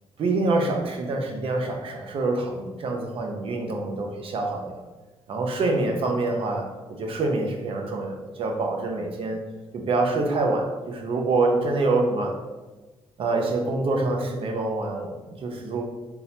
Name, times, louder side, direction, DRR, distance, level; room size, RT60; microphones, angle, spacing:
voice 1, 0.2-4.8 5.3-6.7 7.0-9.4 9.7-12.4 13.2-15.8, right 2 dB, 60° right, 2 dB, 0.7 m, -26 dB
4.2 x 3.8 x 2.8 m, 1.2 s
cardioid pair, 130°, 11 cm